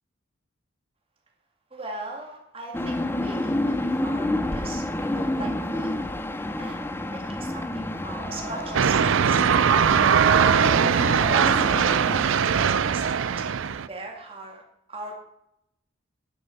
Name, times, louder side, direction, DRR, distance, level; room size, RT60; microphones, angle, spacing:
voice 1, 1.7-5.9 6.3-6.8 7.1-10.0 11.3-11.7 11.9-14.6 14.9-15.2, right 2 dB, 25° right, 0 dB, 2.2 m, -39 dB
sound 1, 2.7-12.3, left 1 dB, 10° left, 0.6 m, -29 dB
sound 2, 8.2-13.3, right 5 dB, 45° right, 2.0 m, -34 dB
sound 3, 8.7-13.9, right 7 dB, 70° right, 0.5 m, -21 dB
9.8 x 6.5 x 9.0 m, 0.79 s
head